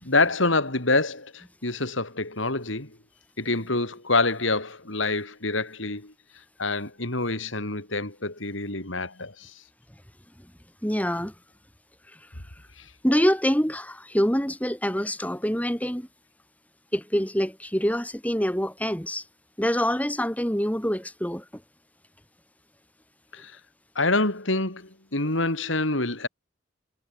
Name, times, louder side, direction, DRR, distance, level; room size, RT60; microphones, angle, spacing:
voice 1, 0.0-3.0 3.4-6.1 6.6-9.5 12.8-12.9 23.3-23.6 23.9-26.3, left 3 dB, 80° left, 4.8 m, -26 dB
voice 2, 10.8-11.3 13.0-16.1 16.9-19.2 19.6-21.4, equal, 5° left, 4.7 m, -25 dB
head